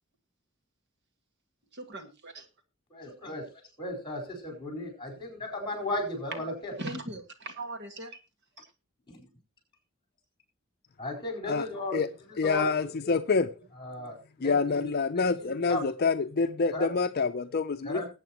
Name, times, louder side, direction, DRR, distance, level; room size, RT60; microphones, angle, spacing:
voice 1, 1.7-2.5 6.8-8.2, right 2 dB, 55° right, 2.0 m, -39 dB
voice 2, 2.9-6.8 9.1-9.3 11.0-12.0 12.4-13.2 13.8-15.9 16.7-16.9 17.8-18.1, left 1 dB, 25° left, 4.6 m, -36 dB
voice 3, 12.4-13.5 14.4-18.0, left 4 dB, 50° left, 0.5 m, -27 dB
20.5 x 8.6 x 3.0 m
head